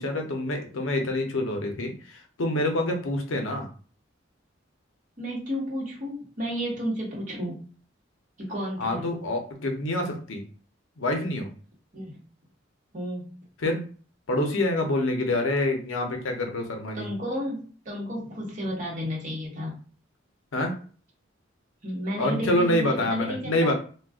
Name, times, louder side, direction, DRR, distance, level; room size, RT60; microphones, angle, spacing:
voice 1, 0.0-3.7 8.8-10.4 11.0-11.5 13.6-13.8 14.3-17.1 20.5-20.7 22.2-23.7, left 1 dB, 85° left, 3 dB, 0.6 m, -26 dB
voice 2, 5.2-7.6 8.4-9.1 11.9-12.2 12.9-13.4 16.9-19.8 21.8-23.7, equal, 40° right, -3 dB, 1.1 m, -32 dB
2.4 x 2.2 x 3.4 m, 0.40 s
head